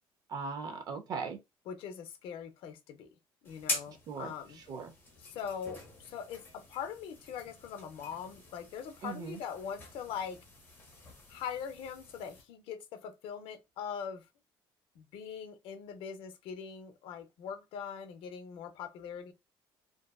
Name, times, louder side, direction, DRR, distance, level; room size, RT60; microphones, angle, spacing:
voice 1, 0.3-1.4 4.1-4.9 9.0-9.4, right 5 dB, 45° right, 0.4 m, -39 dB
voice 2, 1.7-3.1 3.4-4.6 5.2-10.4 11.3-14.2 15.0-19.3, left 7 dB, 70° left, 0.5 m, -42 dB
sound 1, 3.4-12.4, left 2 dB, 25° left, 0.9 m, -45 dB
2.6 x 2.3 x 2.2 m
cardioid pair, 165°, 9 cm